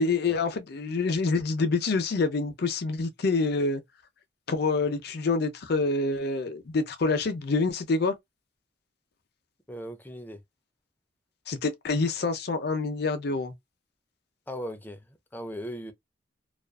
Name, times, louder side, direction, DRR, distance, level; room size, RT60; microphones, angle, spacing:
voice 1, 0.0-3.8 4.5-8.2 11.5-13.5, left 3 dB, 60° left, 0.5 m, -27 dB
voice 2, 9.7-10.4 14.5-15.9, equal, 10° left, 0.4 m, -38 dB
2.4 x 2.3 x 2.3 m
head